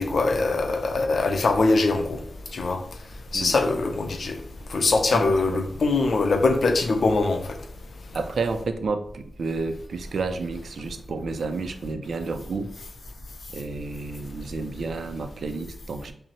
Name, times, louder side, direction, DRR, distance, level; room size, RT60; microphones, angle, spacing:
voice 1, 0.0-2.2 2.5-2.8 3.3-4.4 4.7-7.4, left 3 dB, 75° left, 0.5 m, -22 dB
voice 2, 5.1-5.6 8.1-12.7 13.5-16.1, right 4 dB, 85° right, 0.4 m, -31 dB
5.4 x 2.1 x 3.0 m
wide cardioid pair, 85°, 0 cm